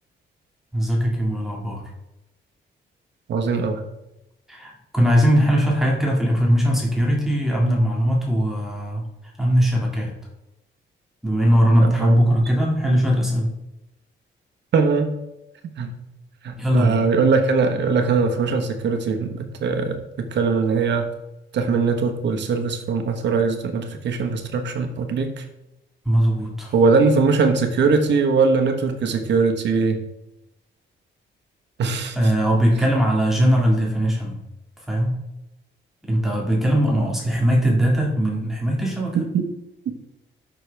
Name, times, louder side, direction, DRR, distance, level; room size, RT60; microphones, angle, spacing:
voice 1, 0.7-1.8 4.5-9.0 9.4-10.1 11.2-13.5 16.6-17.0 26.1-26.7 32.1-34.3 34.9-35.1 36.0-39.2, equal, ahead, -3 dB, 2.0 m, -20 dB
voice 2, 3.3-3.8 11.8-12.3 14.7-15.1 15.8-15.9 16.4-21.1 21.5-25.4 26.7-30.0 31.8-32.2 36.9-37.1 39.3-39.4, right 4 dB, 70° right, 4 dB, 1.3 m, -21 dB
13.5 x 6.2 x 3.4 m, 0.91 s
wide cardioid pair, 160°, 19 cm